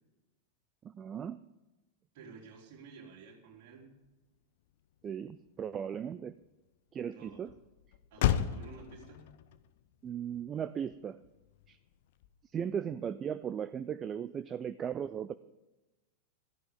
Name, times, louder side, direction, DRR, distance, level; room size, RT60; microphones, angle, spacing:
voice 1, 0.8-1.4 5.0-6.4 6.9-7.6 10.0-11.2 11.7-11.8 12.5-15.3, right 8 dB, 25° right, 15 dB, 0.4 m, -37 dB
voice 2, 2.1-3.9 7.1-7.5 8.1-9.3, right 5 dB, 45° right, -1 dB, 3.7 m, -52 dB
Motor vehicle (road), 4.0-12.7, left 11 dB, 55° left, 0.7 m, -38 dB
16.5 x 14.5 x 3.8 m, 1.0 s
figure-of-eight pair, 90°, 0 cm